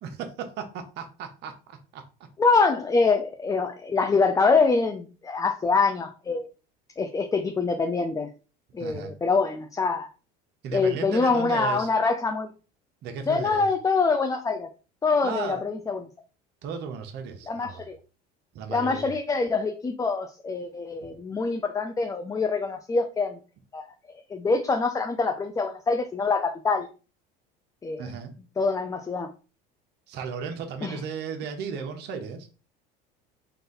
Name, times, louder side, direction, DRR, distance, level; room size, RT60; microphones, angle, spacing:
voice 1, 0.0-2.0 8.8-9.1 10.6-11.9 13.0-13.7 15.2-15.7 16.6-17.9 18.5-19.1 21.0-21.1 28.0-28.3 30.1-32.5, right 6 dB, 60° right, 1.0 m, -35 dB
voice 2, 2.4-6.5 7.0-8.3 8.7-10.1 10.7-12.5 13.3-14.7 15.0-16.0 17.5-18.0 18.7-23.4 23.7-23.8 24.3-26.9 27.8-28.1 28.6-29.3 30.8-31.0, left 4 dB, 15° left, 0.5 m, -25 dB
3.9 x 2.6 x 3.9 m
supercardioid pair, 110°, 20 cm